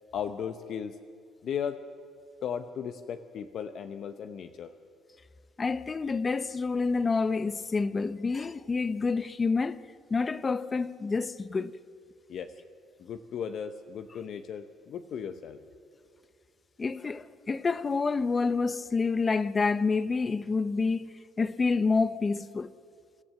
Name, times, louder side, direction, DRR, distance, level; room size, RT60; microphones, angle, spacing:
voice 1, 0.1-1.0 1.4-1.8 2.4-4.7 12.3-12.5 13.0-15.6, left 7 dB, 55° left, 0.8 m, -36 dB
voice 2, 5.6-9.8 10.1-11.8 16.8-22.7, left 4 dB, 25° left, 0.7 m, -28 dB
26.0 x 13.5 x 7.6 m
cardioid pair, 110°, 0 cm